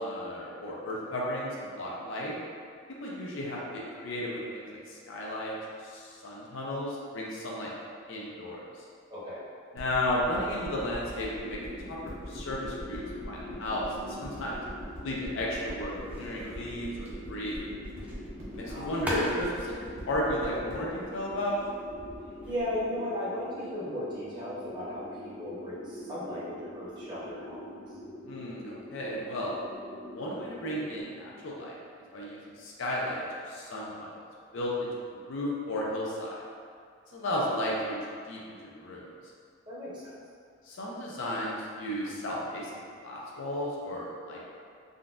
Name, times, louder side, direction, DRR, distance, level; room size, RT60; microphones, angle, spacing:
voice 1, 0.0-2.4 3.0-5.6 5.8-7.7 8.1-8.6 9.7-11.6 11.9-12.0 12.3-14.6 15.0-17.6 18.5-19.7 20.1-21.6 28.2-29.5 30.1-31.8 32.1-34.3 34.5-36.4 37.1-38.0 38.3-39.1 40.6-44.4, left 1 dB, 65° left, -4 dB, 0.5 m, -34 dB
voice 2, 9.1-9.4 18.6-18.9 22.5-27.6 27.9-28.0 39.7-40.1, left 1 dB, 20° right, -9 dB, 0.8 m, -36 dB
sound 1, 9.8-22.5 23.1-23.2, equal, 70° right, 0.8 m, -43 dB
sound 2, 11.4-31.0, left 1 dB, 50° left, 1.0 m, -44 dB
sound 3, 13.6-23.0, equal, 5° right, 0.4 m, -43 dB
3.7 x 2.2 x 2.4 m, 2.2 s
head